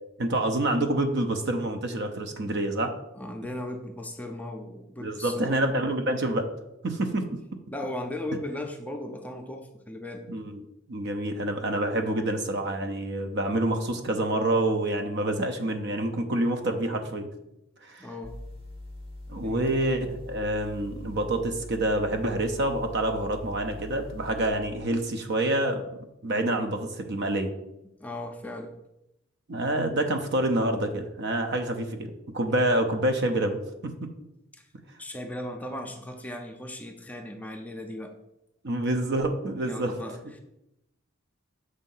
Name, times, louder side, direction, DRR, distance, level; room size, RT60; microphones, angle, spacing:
voice 1, 0.2-2.9 5.0-6.5 6.8-7.4 10.3-10.6 10.9-17.3 17.8-18.1 19.3-25.8 26.2-27.5 29.5-34.1 38.6-39.9, right 1 dB, 55° right, 6 dB, 0.7 m, -27 dB
voice 2, 3.1-5.9 7.7-10.2 18.0-18.4 19.3-19.8 28.0-28.7 34.5-34.7 35.0-38.1 39.6-40.4, left 1 dB, 10° left, 3 dB, 0.5 m, -37 dB
sound 1, 18.2-24.5, left 1 dB, 25° right, 0.8 m, -42 dB
6.4 x 2.7 x 5.5 m, 0.87 s
head